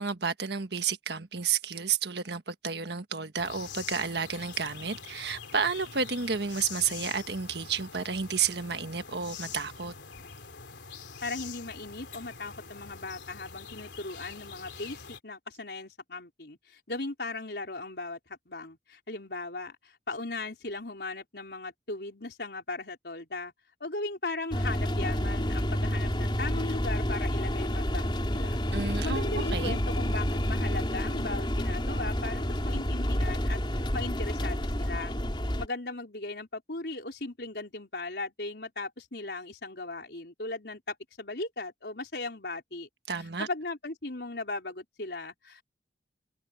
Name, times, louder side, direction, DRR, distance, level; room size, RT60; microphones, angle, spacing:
voice 1, 0.0-9.9 28.7-29.8 43.1-43.5, right 6 dB, 70° right, 1.5 m, -31 dB
sound 1, 3.4-15.2, left 6 dB, 85° left, 3.2 m, -45 dB
voice 2, 11.2-18.2 18.5-23.5 23.8-35.2 35.6-42.9 43.4-45.6, left 2 dB, 70° left, 4.1 m, -38 dB
sound 2, 24.5-35.7, equal, 25° left, 3.5 m, -29 dB
head